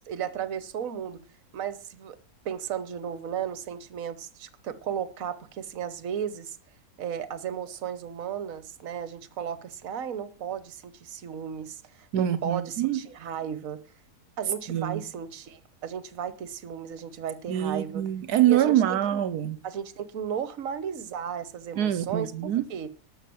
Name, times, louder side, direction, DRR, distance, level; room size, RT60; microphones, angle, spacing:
voice 1, 0.1-1.2 1.5-2.2 2.4-6.6 7.0-13.8 14.4-18.0 18.5-19.2 19.6-22.3 22.7-22.9, right 8 dB, 60° right, 1.4 m, -34 dB
voice 2, 12.1-13.0 14.7-15.0 17.5-19.6 21.8-22.6, right 11 dB, 80° right, 1.3 m, -25 dB
12.5 x 6.9 x 7.7 m
omnidirectional pair, 1.7 m